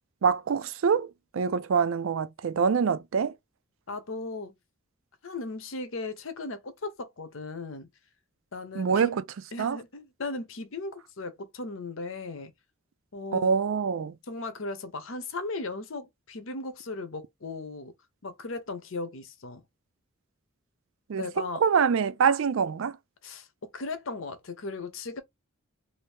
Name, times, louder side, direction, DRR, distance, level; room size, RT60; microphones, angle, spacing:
voice 1, 0.2-3.3 8.8-9.2 9.6-9.8 13.3-14.1 21.1-21.3 21.6-22.9, right 6 dB, 70° right, 0.4 m, -25 dB
voice 2, 3.9-4.5 5.2-7.9 8.5-9.1 9.5-12.5 13.1-13.5 14.3-17.9 18.2-19.6 21.2-21.6 23.2-23.5 23.7-25.2, left 3 dB, 70° left, 0.8 m, -37 dB
2.7 x 2.6 x 3.4 m
head